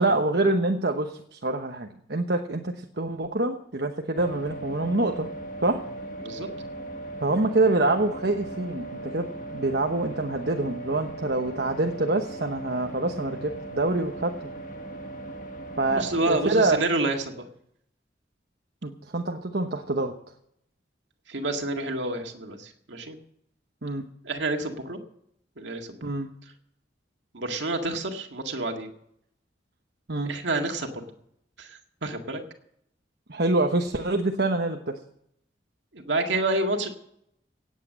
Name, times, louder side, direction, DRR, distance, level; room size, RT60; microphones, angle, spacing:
voice 1, 0.0-5.3 5.6-5.8 7.2-14.4 15.8-16.8 18.8-20.1 23.8-24.1 26.0-26.3 30.1-30.3 33.3-35.0, right 2 dB, 65° right, 4 dB, 1.1 m, -26 dB
sound 1, 4.1-16.8, right 2 dB, 45° left, 1.7 m, -38 dB
voice 2, 15.9-17.5 21.3-23.2 24.2-25.0 25.6-26.0 27.3-28.9 30.2-31.0 31.6-32.4 35.9-36.9, right 2 dB, 90° right, 3 dB, 2.0 m, -29 dB
17.5 x 8.4 x 7.5 m, 0.72 s
head